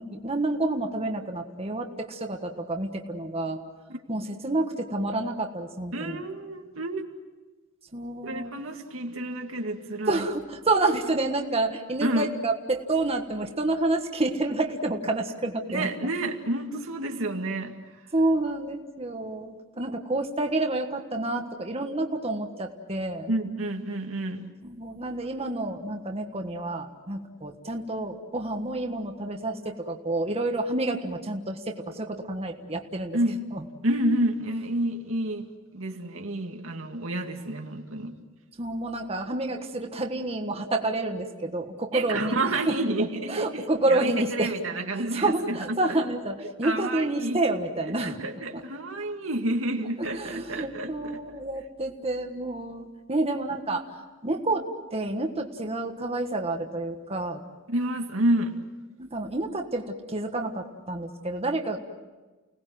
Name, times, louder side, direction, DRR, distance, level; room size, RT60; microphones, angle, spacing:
voice 1, 0.0-3.6 4.1-6.2 7.9-8.5 10.1-15.9 18.1-23.3 24.6-33.2 33.5-33.6 38.6-42.4 42.7-42.8 43.3-44.5 45.1-48.2 50.0-57.4 59.0-61.8, right 2 dB, 30° right, 3 dB, 1.5 m, -29 dB
voice 2, 3.9-4.3 5.9-7.0 8.2-10.3 12.0-12.3 15.7-17.7 23.3-24.5 33.1-33.4 33.8-38.1 41.9-46.1 46.6-47.4 48.0-51.2 57.7-58.6, right 1 dB, 80° right, 3 dB, 2.2 m, -29 dB
29.5 x 19.0 x 7.8 m, 1.3 s
head